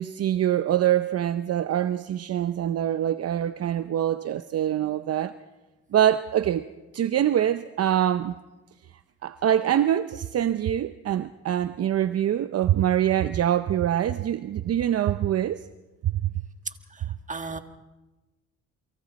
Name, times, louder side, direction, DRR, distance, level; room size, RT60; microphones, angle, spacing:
voice 1, 0.0-5.3 5.9-6.7 6.9-8.3 9.2-15.6 16.0-16.3, right 11 dB, 55° right, 0.7 m, -24 dB
voice 2, 16.9-17.6, right 4 dB, 25° right, 1.6 m, -36 dB
29.0 x 24.0 x 4.2 m
cardioid pair, 90°, 30 cm